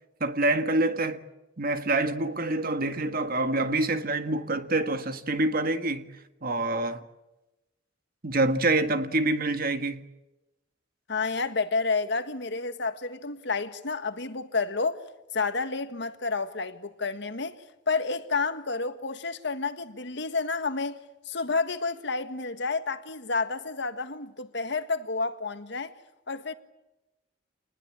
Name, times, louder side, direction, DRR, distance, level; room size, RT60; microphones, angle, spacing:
voice 1, 0.2-1.2 1.6-6.1 6.4-7.0 8.2-10.0, right 2 dB, 50° right, 1.7 m, -26 dB
voice 2, 11.1-15.0 15.3-21.0 21.2-25.9 26.3-26.5, left 4 dB, 65° left, 1.6 m, -30 dB
27.0 x 20.5 x 8.8 m
head